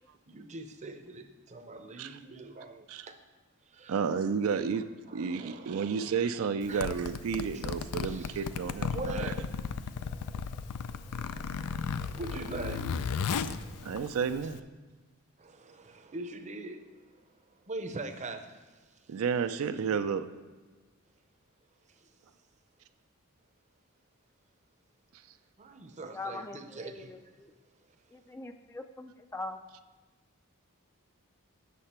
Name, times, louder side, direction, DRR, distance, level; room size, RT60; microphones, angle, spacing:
voice 1, 0.3-3.2 3.6-4.4 5.1-6.2 6.7-6.9 7.5-7.7 7.9-8.5 8.9-14.5 15.4-19.2 21.9-22.2 25.6-27.5 27.8-28.0, right 2 dB, 30° right, 7 dB, 0.7 m, -44 dB
voice 2, 3.9-4.8 5.1-9.3 13.8-14.6 19.1-20.3, right 6 dB, 65° right, 10 dB, 0.4 m, -31 dB
Zipper (clothing), 6.6-14.6, left 6 dB, 80° left, 0.4 m, -35 dB
voice 3, 26.1-27.5 28.1-29.6, left 2 dB, 10° left, 7 dB, 0.3 m, -42 dB
8.4 x 6.6 x 4.3 m, 1.3 s
head